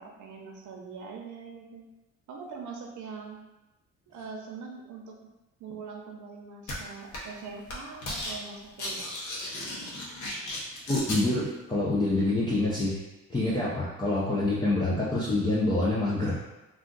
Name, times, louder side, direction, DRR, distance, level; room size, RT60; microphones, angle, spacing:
voice 1, 0.0-1.9 2.3-3.4 4.1-5.2 5.6-9.1, right 5 dB, 75° right, 1 dB, 0.7 m, -42 dB
sound 1, 6.7-6.8 7.1-7.4 7.7-8.3 8.6-11.2, left 1 dB, 70° left, 0.9 m, -35 dB
voice 2, 10.9-13.0 13.3-16.4, left 2 dB, 15° left, -7 dB, 0.5 m, -26 dB
2.4 x 2.4 x 3.8 m, 1.0 s
cardioid pair, 90°, 30 cm